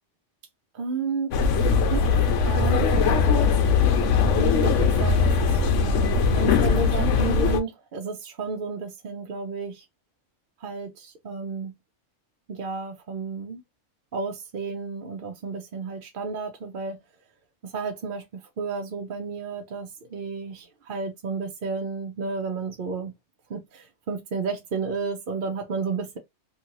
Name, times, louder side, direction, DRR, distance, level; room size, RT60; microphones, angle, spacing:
voice 1, 0.7-1.4 1.9-3.5 4.2-9.8 10.6-11.7 12.5-13.6 14.1-17.0 17.6-23.1 23.5-26.2, right 4 dB, 55° right, 0.7 m, -32 dB
sound 1, 1.3-7.6, left 5 dB, 90° left, 1.0 m, -20 dB
2.6 x 2.6 x 2.8 m
omnidirectional pair, 1.2 m